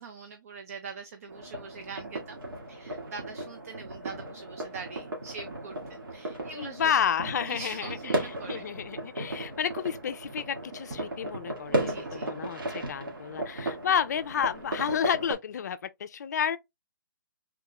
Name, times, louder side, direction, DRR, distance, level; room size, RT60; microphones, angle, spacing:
voice 1, 0.0-2.4 2.7-6.9 7.5-8.7 11.7-12.3, right 5 dB, 45° right, 0.5 m, -43 dB
sound 1, 1.3-15.3, right 1 dB, 80° right, 1.6 m, -35 dB
voice 2, 6.5-16.6, left 8 dB, 50° left, 0.4 m, -31 dB
3.6 x 2.9 x 2.2 m
hypercardioid pair, 165°, 11 cm